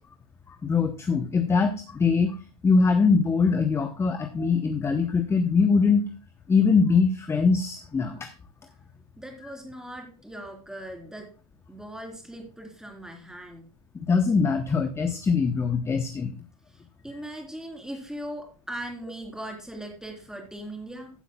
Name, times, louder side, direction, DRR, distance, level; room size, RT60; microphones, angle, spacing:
voice 1, 0.5-2.4 2.6-6.0 6.5-8.3 13.9-16.3, left 5 dB, 15° left, 8 dB, 0.9 m, -22 dB
voice 2, 9.2-11.3 11.7-13.7 16.7-21.1, right 1 dB, 5° right, 0 dB, 3.8 m, -39 dB
15.0 x 8.0 x 2.3 m, 0.37 s
hypercardioid pair, 95°, 19 cm